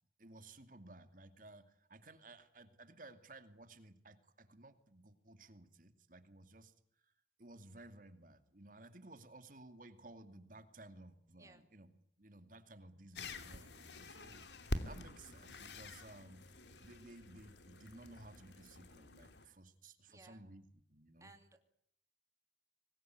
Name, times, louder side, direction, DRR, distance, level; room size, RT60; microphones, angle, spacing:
voice 1, 0.2-6.7 7.0-7.1 7.4-11.9 12.2-16.5 16.8-21.3, right 2 dB, 50° right, 10 dB, 2.5 m, -57 dB
sound 1, 13.1-19.5, left 1 dB, 75° left, 2.6 m, -47 dB
voice 2, 20.1-20.4 21.2-21.6, right 2 dB, 20° right, 6 dB, 2.7 m, -61 dB
24.5 x 20.5 x 9.5 m, 0.68 s
head